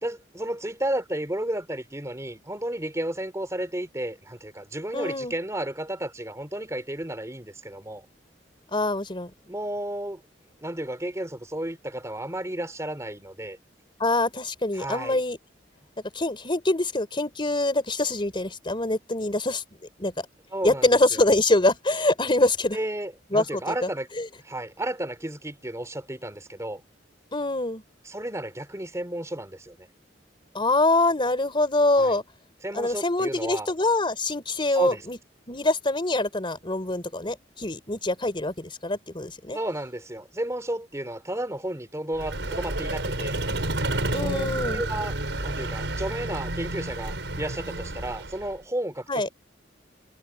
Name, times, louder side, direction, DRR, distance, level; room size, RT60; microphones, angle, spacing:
voice 1, 0.0-8.1 9.5-10.2 10.6-13.6 14.7-15.2 20.5-21.2 22.7-24.1 24.4-26.8 28.0-29.9 32.0-32.2 32.6-33.7 34.7-35.0 39.5-43.4 44.2-44.5 44.7-49.3, right 1 dB, 15° right, 3.3 m, -32 dB
voice 2, 4.9-5.3 8.7-9.3 14.0-15.4 16.1-19.6 20.0-20.1 20.6-22.8 23.3-23.9 24.2-24.3 27.3-27.8 30.5-32.2 32.7-35.2 35.5-39.6 44.1-44.8 49.1-49.3, left 2 dB, 30° left, 3.7 m, -24 dB
Vehicle, 42.1-48.6, right 2 dB, 80° right, 5.6 m, -30 dB
head